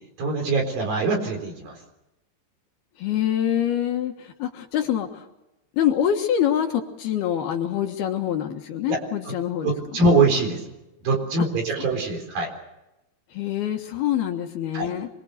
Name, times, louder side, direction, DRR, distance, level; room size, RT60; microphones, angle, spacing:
voice 1, 0.2-1.8 8.9-9.0 9.3-9.4 9.6-10.6 11.0-12.5 14.7-14.9, right 3 dB, 55° right, 3 dB, 5.6 m, -23 dB
voice 2, 3.0-5.2 5.7-9.7 13.3-15.1, left 10 dB, 65° left, 4 dB, 3.1 m, -25 dB
25.5 x 22.5 x 6.6 m, 0.94 s
omnidirectional pair, 5.2 m